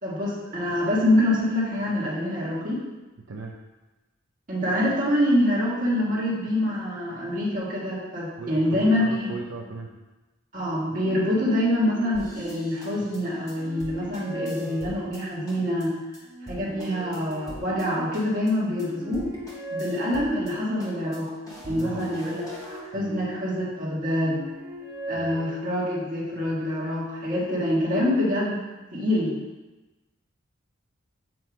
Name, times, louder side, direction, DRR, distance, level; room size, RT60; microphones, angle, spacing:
voice 1, 0.0-2.8 4.5-9.3 10.5-15.9 16.5-19.3 19.7-21.3 21.6-24.4 25.1-28.6 28.9-29.4, left 1 dB, 40° right, -7 dB, 1.6 m, -25 dB
voice 2, 8.4-9.9 21.7-22.0 22.9-23.1 25.2-25.3, right 3 dB, 75° right, -3 dB, 0.6 m, -37 dB
sound 1, 10.9-13.0 13.5-15.5 16.2-18.4 18.8-20.9 21.6-23.7 24.2-26.2, right 1 dB, 20° right, 1.6 m, -40 dB
sound 2, 12.1-15.2 15.5-15.9 16.1-16.2 16.5-17.9 18.1-18.5 18.8-18.9 19.1-20.5 20.8-22.8, equal, 20° left, 1.4 m, -44 dB
7.6 x 2.8 x 4.7 m, 1.1 s
head